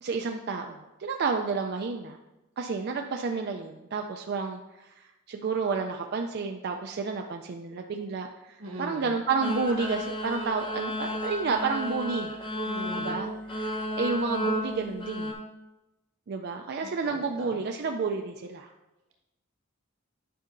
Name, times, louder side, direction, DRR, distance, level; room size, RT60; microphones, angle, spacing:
voice 1, 0.0-2.2 2.6-12.3 13.0-15.3 16.3-18.7, right 4 dB, 55° right, 3 dB, 0.4 m, -31 dB
voice 2, 8.6-9.2 12.6-13.2 16.8-17.6, equal, 90° right, -1 dB, 1.6 m, -41 dB
sound 1, 9.4-15.3, equal, 25° left, 0.8 m, -33 dB
10.0 x 5.5 x 2.6 m, 0.98 s
head